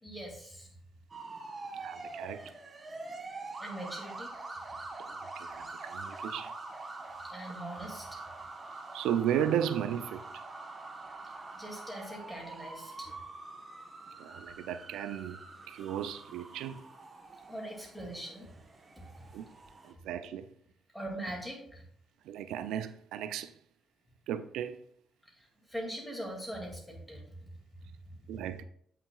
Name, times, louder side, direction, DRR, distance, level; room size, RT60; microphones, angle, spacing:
voice 1, 0.0-0.7 3.6-4.4 7.2-8.2 11.2-13.1 17.5-18.5 19.0-19.3 20.9-21.8 25.2-27.5 27.8-28.2, right 1 dB, 5° left, 2.2 m, -42 dB
sound 1, 1.1-19.9, right 3 dB, 30° right, 1.0 m, -45 dB
voice 2, 1.7-2.5 5.1-6.5 8.9-10.3 14.2-16.8 19.3-19.5 19.8-20.5 22.2-23.5 24.3-24.8 28.3-28.6, right 10 dB, 90° right, 0.4 m, -35 dB
8.2 x 5.9 x 2.3 m
cardioid pair, 90°, 0 cm